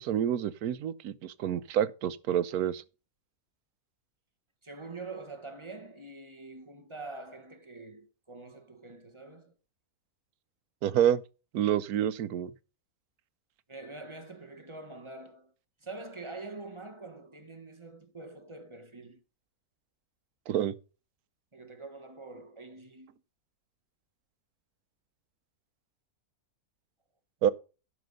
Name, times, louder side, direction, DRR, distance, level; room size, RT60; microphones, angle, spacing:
voice 1, 0.0-2.8 10.8-11.2 11.5-12.5 20.5-20.7 27.4-27.5, right 10 dB, 90° right, 1.2 m, -28 dB
voice 2, 4.6-9.5 10.8-11.0 13.7-15.5 15.8-19.2 21.5-23.2, right 3 dB, 20° right, 1.2 m, -45 dB
11.5 x 6.0 x 5.3 m
omnidirectional pair, 1.6 m